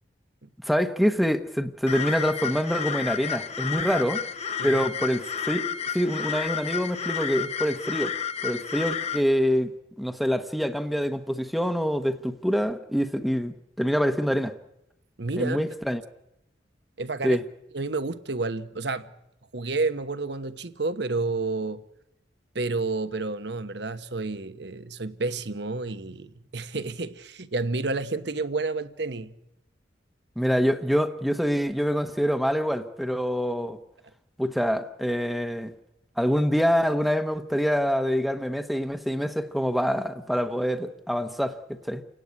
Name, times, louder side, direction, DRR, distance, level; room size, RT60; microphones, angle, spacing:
voice 1, 0.6-4.2 4.6-8.1 8.4-9.7 10.0-14.5 15.4-16.0 17.2-17.4 30.4-33.8 34.4-35.7 36.2-42.0, equal, ahead, 1.0 m, -25 dB
sound 1, 1.9-9.2, left 7 dB, 35° left, 1.0 m, -31 dB
voice 2, 15.2-15.6 17.0-17.4 17.7-19.1 19.5-21.8 22.5-29.4, right 3 dB, 65° right, 1.2 m, -30 dB
29.5 x 17.5 x 9.7 m
head